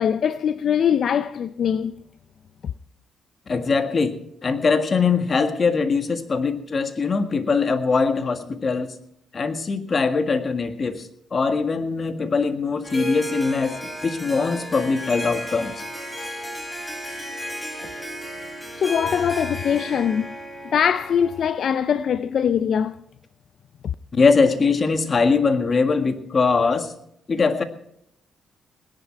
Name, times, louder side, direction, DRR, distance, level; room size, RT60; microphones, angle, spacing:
voice 1, 0.0-2.0 18.8-20.3 20.6-23.0 23.8-23.9, left 8 dB, 65° left, 0.4 m, -22 dB
voice 2, 3.5-9.0 9.3-15.7 24.1-26.9 27.3-27.6, left 4 dB, 45° left, 1.7 m, -22 dB
Harp, 12.8-21.6, equal, 10° left, 3.5 m, -34 dB
18.5 x 11.0 x 4.5 m
cardioid pair, 70°, 0 cm